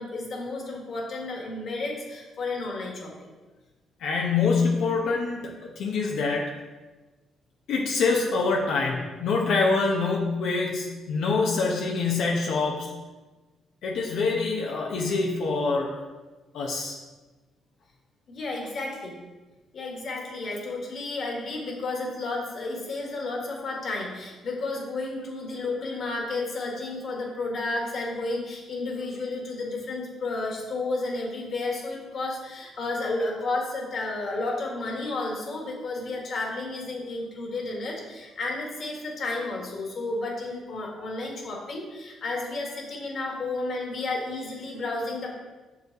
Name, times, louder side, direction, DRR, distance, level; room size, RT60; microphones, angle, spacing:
voice 1, 0.0-3.1 18.3-19.2 19.7-45.3, left 2 dB, 55° left, -1 dB, 1.8 m, -32 dB
voice 2, 4.0-6.5 7.7-12.9 13.8-16.0 16.5-17.0, left 4 dB, 80° left, -2 dB, 0.8 m, -25 dB
6.4 x 4.8 x 4.0 m, 1.2 s
cardioid pair, 90°, 0 cm